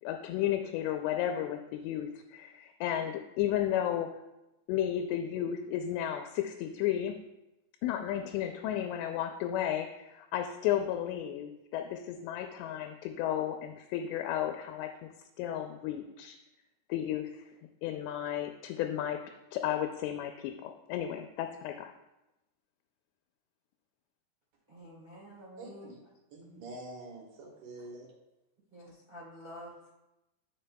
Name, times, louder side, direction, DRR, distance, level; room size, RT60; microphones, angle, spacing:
voice 1, 0.0-4.1 4.7-7.2 7.8-14.9 15.4-16.4 16.9-17.5 17.8-19.2 19.5-21.9, left 11 dB, 90° left, 5 dB, 2.7 m, -33 dB
voice 2, 24.7-25.9 28.7-29.9, equal, 90° right, -7 dB, 0.5 m, -49 dB
voice 3, 25.6-25.9 26.3-28.1, right 2 dB, 60° right, -1 dB, 2.6 m, -46 dB
11.0 x 6.4 x 2.2 m, 0.95 s
omnidirectional pair, 4.8 m